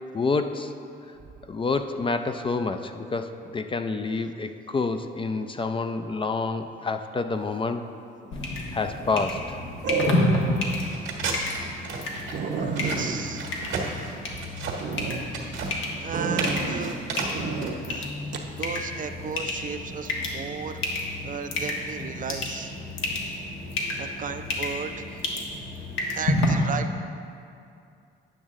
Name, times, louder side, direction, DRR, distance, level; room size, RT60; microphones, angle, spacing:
voice 1, 0.1-0.7 1.5-7.8 8.7-9.6, left 4 dB, 25° left, 8 dB, 0.4 m, -28 dB
sound 1, 8.2-8.6 9.8-10.6 11.1-11.2 11.6-11.7 12.0-12.1 12.3-14.4 14.8-15.2 16.1-16.9 17.3-17.7 18.3-18.5, right 4 dB, 65° right, 0.8 m, -30 dB
sound 2, 8.3-26.5, left 2 dB, 80° left, 1.3 m, -31 dB
sound 3, 10.7-17.7, right 4 dB, 85° right, 1.4 m, -33 dB
voice 2, 12.7-13.5 16.0-17.0 17.9-18.1 18.6-22.8 24.0-25.3 26.2-27.0, right 6 dB, 40° right, 8 dB, 0.5 m, -35 dB
10.0 x 6.1 x 3.7 m, 2.5 s
cardioid pair, 90°, 20 cm